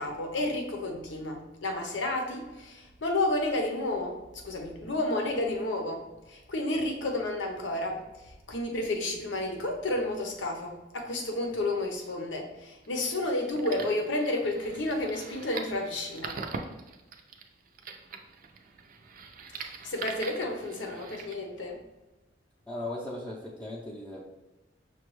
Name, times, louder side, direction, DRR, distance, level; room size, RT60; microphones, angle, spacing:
voice 1, 0.0-16.4 19.5-21.8, left 2 dB, 90° left, 2 dB, 0.8 m, -31 dB
sound 1, 12.8-21.3, right 5 dB, 50° right, 0.4 m, -42 dB
voice 2, 22.7-24.2, left 1 dB, 10° left, -7 dB, 0.5 m, -37 dB
5.9 x 2.3 x 3.1 m, 1.0 s
head